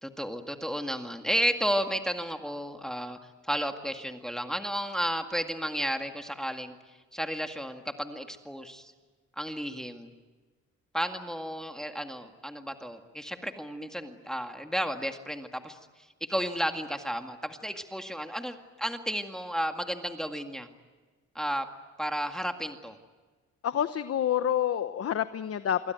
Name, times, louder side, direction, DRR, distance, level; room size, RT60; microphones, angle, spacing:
voice 1, 0.0-3.2 3.5-6.8 7.1-8.9 9.4-10.1 10.9-15.8 16.2-20.7 21.4-21.7 22.0-22.9, equal, ahead, 5 dB, 2.0 m, -32 dB
voice 2, 23.6-25.8, left 10 dB, 50° left, 11 dB, 1.0 m, -28 dB
27.5 x 23.0 x 9.2 m, 1.3 s
cardioid pair, 90°, 30 cm